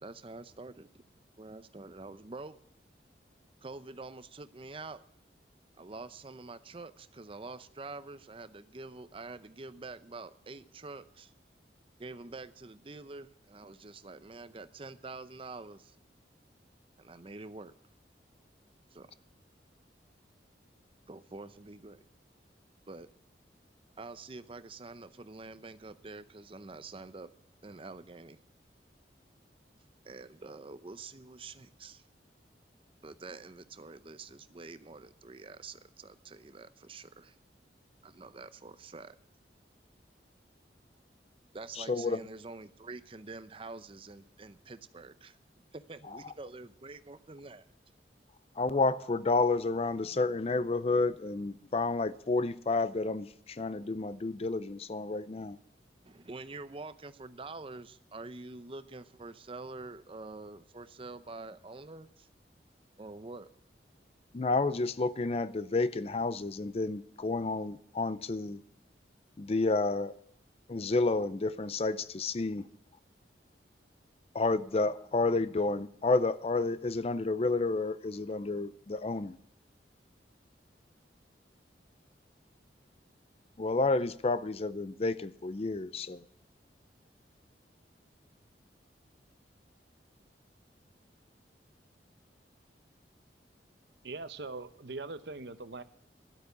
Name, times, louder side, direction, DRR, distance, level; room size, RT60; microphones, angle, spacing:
voice 1, 0.0-1.0 1.4-2.6 3.6-5.0 5.8-11.3 12.0-16.0 17.0-17.7 18.9-19.1 21.1-22.0 22.9-23.1 24.0-27.3 27.6-28.4 30.0-32.0 33.0-37.4 38.0-39.2 41.5-45.4 45.7-47.7 56.0-62.3 63.0-63.5, right 3 dB, 30° right, 0.6 m, -46 dB
voice 2, 41.8-42.2 48.6-55.6 64.3-68.6 69.4-70.1 70.7-72.7 74.3-79.4 83.6-86.2, left 3 dB, 35° left, 0.5 m, -30 dB
voice 3, 94.0-95.8, right 3 dB, 75° right, 0.9 m, -41 dB
12.5 x 8.4 x 8.1 m
head